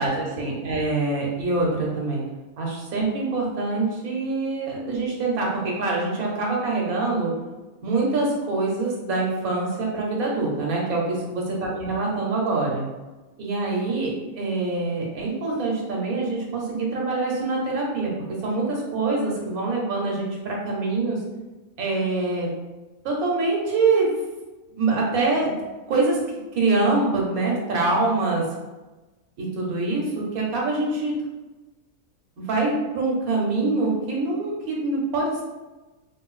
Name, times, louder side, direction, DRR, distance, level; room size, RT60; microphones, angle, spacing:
voice 1, 0.0-2.2 2.6-7.3 7.8-12.9 13.4-18.1 18.4-21.2 21.8-22.5 23.0-24.1 24.7-25.5 25.9-26.2 26.5-28.5 29.4-31.2 32.4-35.4, right 3 dB, 85° right, -2 dB, 1.3 m, -24 dB
3.4 x 2.5 x 2.3 m, 1.1 s
omnidirectional pair, 1.5 m